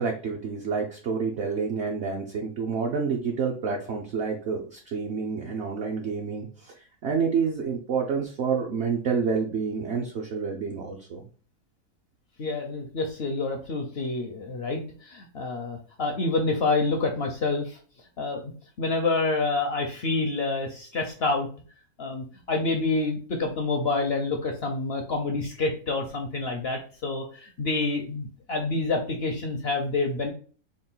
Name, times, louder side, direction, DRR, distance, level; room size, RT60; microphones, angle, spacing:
voice 1, 0.0-6.5 7.0-11.2, right 5 dB, 60° right, 0 dB, 0.7 m, -28 dB
voice 2, 12.4-17.8 18.2-18.5 18.8-21.5 22.0-30.3, left 3 dB, 65° left, 3 dB, 0.6 m, -28 dB
3.7 x 2.4 x 3.8 m, 0.41 s
omnidirectional pair, 1.6 m